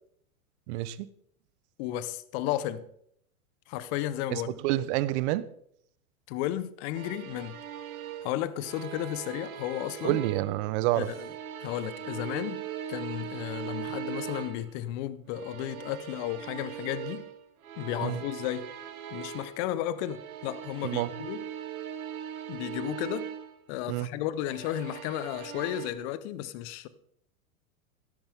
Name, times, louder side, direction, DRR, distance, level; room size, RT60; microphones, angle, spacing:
voice 1, 0.7-1.1 4.3-5.4 10.0-11.1 18.0-18.2 20.8-21.1 23.9-24.1, right 15 dB, 50° right, 1.1 m, -28 dB
voice 2, 1.8-2.8 3.7-4.6 6.3-7.6 8.2-10.2 11.0-11.3 11.6-12.6 12.9-17.2 17.8-18.7 19.1-21.4 22.5-23.3 23.7-26.9, left 12 dB, 50° left, 1.4 m, -33 dB
sound 1, 6.9-10.6 10.9-14.8 15.3-19.7 20.0-23.5 24.3-25.9, right 9 dB, 75° right, 2.1 m, -40 dB
16.0 x 13.5 x 3.8 m
hypercardioid pair, 100°, 43 cm